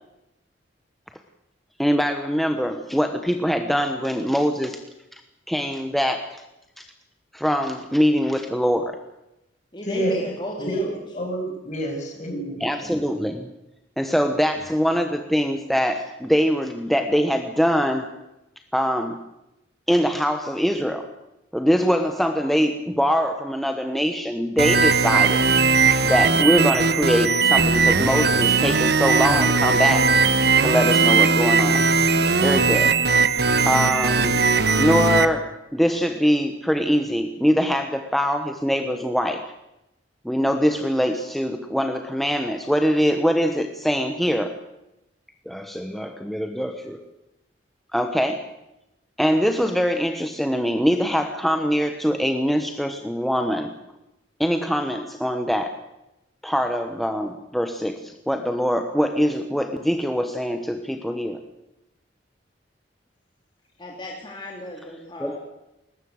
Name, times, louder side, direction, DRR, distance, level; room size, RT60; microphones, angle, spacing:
voice 1, 1.8-4.8 5.1-5.2 5.5-6.4 6.8-6.9 7.3-8.8 12.6-13.5 14.0-18.2 18.7-19.2 19.9-21.0 21.5-25.5 26.0-30.1 30.6-31.9 32.4-33.0 33.6-34.4 34.8-39.5 40.2-44.5 45.5-47.0 47.9-48.5 49.2-53.7 54.4-55.8 56.4-61.4 65.2-65.4, equal, ahead, 6 dB, 1.1 m, -23 dB
voice 2, 9.7-11.0 63.8-65.4, equal, 25° left, -1 dB, 3.1 m, -34 dB
voice 3, 11.1-12.6, right 1 dB, 40° left, 2 dB, 6.6 m, -28 dB
sound 1, 24.6-35.3, right 4 dB, 60° right, 1.4 m, -19 dB
21.0 x 19.5 x 8.0 m, 0.92 s
head